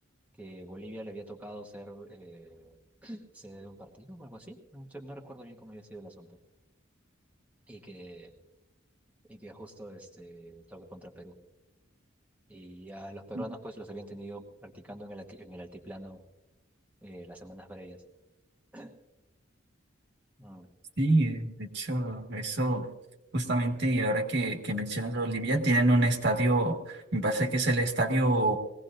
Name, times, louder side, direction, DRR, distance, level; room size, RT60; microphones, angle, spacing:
voice 1, 0.4-2.8 3.0-6.4 7.7-8.3 9.3-11.3 12.5-16.2 17.0-18.0 18.7-18.9 20.4-20.7, right 1 dB, 5° right, -1 dB, 1.2 m, -45 dB
voice 2, 21.0-22.9 23.3-28.6, right 1 dB, 60° right, 3 dB, 1.7 m, -27 dB
21.0 x 17.0 x 2.6 m, 0.98 s
head